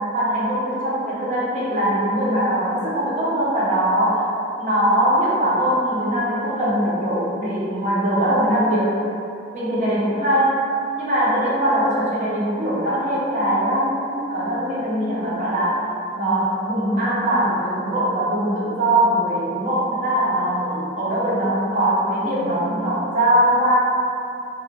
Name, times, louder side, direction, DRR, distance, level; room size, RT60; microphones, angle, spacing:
voice 1, 0.0-4.3 4.6-9.0 9.5-10.6 11.0-15.8 16.1-23.8, right 1 dB, 40° right, -7 dB, 0.6 m, -21 dB
2.3 x 2.2 x 3.2 m, 2.7 s
head